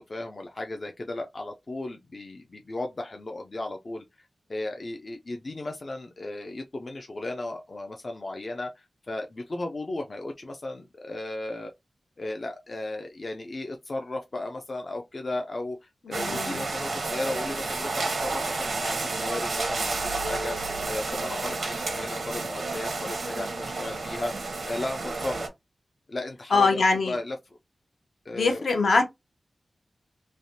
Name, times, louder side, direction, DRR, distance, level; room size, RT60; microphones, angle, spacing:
voice 1, 0.0-4.0 4.5-11.7 12.2-24.3 24.6-25.5 26.1-27.4 28.3-28.6, left 2 dB, 45° left, 0.4 m, -35 dB
voice 2, 16.0-16.6 26.5-27.1 28.3-29.1, left 3 dB, 75° left, 0.7 m, -23 dB
sound 1, 16.1-25.5, right 3 dB, 70° right, 0.8 m, -31 dB
sound 2, 19.6-22.5, right 4 dB, 50° right, 0.3 m, -46 dB
3.3 x 2.1 x 2.7 m
wide cardioid pair, 95°, 0 cm